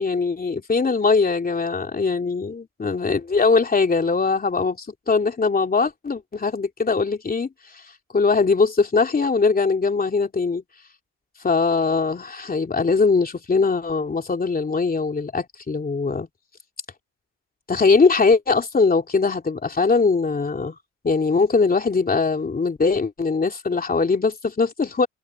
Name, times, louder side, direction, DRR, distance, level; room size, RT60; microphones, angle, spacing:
voice 1, 0.0-7.5 8.1-10.6 11.4-16.3 17.7-20.7 21.0-25.1, left 4 dB, 30° left, 3.2 m, -21 dB
cardioid pair, 90°, 30 cm